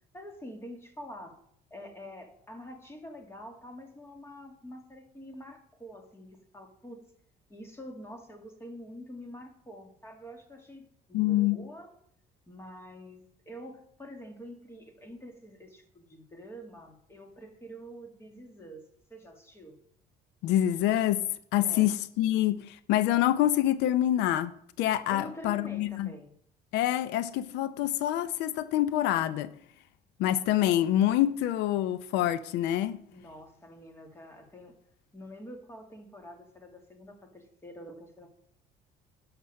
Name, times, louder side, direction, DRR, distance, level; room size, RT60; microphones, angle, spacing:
voice 1, 0.1-1.4 1.7-7.0 7.5-11.9 12.5-19.8 21.6-21.9 25.1-26.3 33.1-34.7 35.1-38.3, equal, 15° left, 2.0 m, -46 dB
voice 2, 11.1-11.6 20.4-21.2 21.5-26.1 26.7-29.5 30.2-33.0, left 13 dB, 90° left, 0.5 m, -26 dB
11.0 x 6.0 x 6.4 m
cardioid pair, 135°, 17 cm